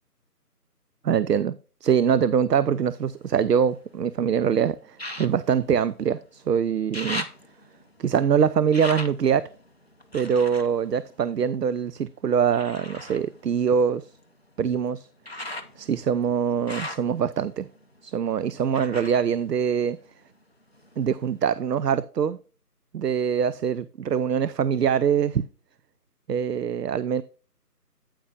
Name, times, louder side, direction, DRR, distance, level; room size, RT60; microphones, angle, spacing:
voice 1, 1.0-1.6 1.8-7.2 8.0-9.5 10.1-14.1 14.6-15.1 15.8-17.7 18.0-20.0 21.0-22.4 22.9-25.4 26.3-27.2, right 7 dB, 80° right, 0.5 m, -23 dB
sound 1, 2.8-4.1 4.9-6.4 6.7-11.9 12.5-20.4 20.7-21.5 22.0-22.1, left 1 dB, 40° left, 0.6 m, -40 dB
9.1 x 8.9 x 2.4 m
figure-of-eight pair, 165°, 48 cm